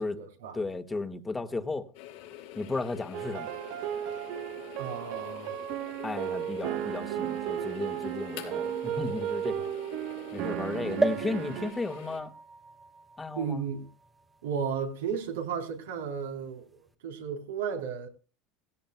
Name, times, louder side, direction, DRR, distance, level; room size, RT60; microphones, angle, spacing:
voice 1, 0.0-0.6 4.8-5.6 10.8-10.9 13.3-13.9 14.4-18.1, right 7 dB, 90° right, 4.0 m, -34 dB
voice 2, 0.5-1.9 2.6-3.5 6.0-9.7 10.3-12.3 13.2-13.6, left 3 dB, 20° left, 1.8 m, -34 dB
sound 1, 1.9-12.2, left 12 dB, 80° left, 4.2 m, -46 dB
sound 2, 3.1-11.7, right 11 dB, 70° right, 1.2 m, -34 dB
sound 3, 11.0-14.7 15.3-15.4 15.6-15.7, right 2 dB, 15° right, 1.5 m, -35 dB
17.0 x 16.5 x 2.3 m
hypercardioid pair, 90°, 0 cm